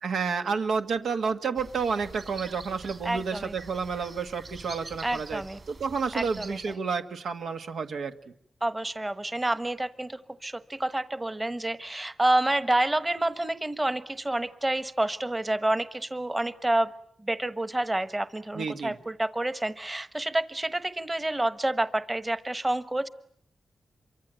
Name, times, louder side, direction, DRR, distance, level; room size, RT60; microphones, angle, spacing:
voice 1, 0.0-5.4 5.7-8.3 18.5-19.0, right 5 dB, 90° right, 6 dB, 1.7 m, -30 dB
sound 1, 1.6-6.7, right 3 dB, 45° right, 3.5 m, -45 dB
voice 2, 3.0-3.5 5.0-5.6 6.1-6.8 8.6-16.9 17.2-23.1, right 1 dB, 20° right, 13 dB, 1.2 m, -28 dB
27.0 x 24.5 x 9.1 m, 0.66 s
wide cardioid pair, 100°, 0 cm